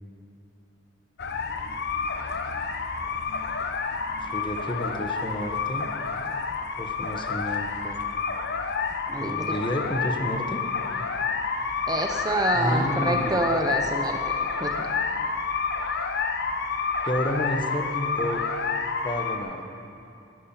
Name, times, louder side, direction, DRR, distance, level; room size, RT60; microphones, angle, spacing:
sound 1, 1.2-19.4, left 5 dB, 55° left, 0.9 m, -29 dB
voice 1, 4.2-5.9 6.8-8.0 9.2-10.6 12.5-13.4 17.0-18.5 19.0-19.6, equal, 25° left, 4 dB, 1.1 m, -30 dB
voice 2, 9.0-9.4 11.9-14.2 14.6-14.9, right 2 dB, 20° right, 4 dB, 0.9 m, -27 dB
11.5 x 11.0 x 9.0 m, 2.7 s
head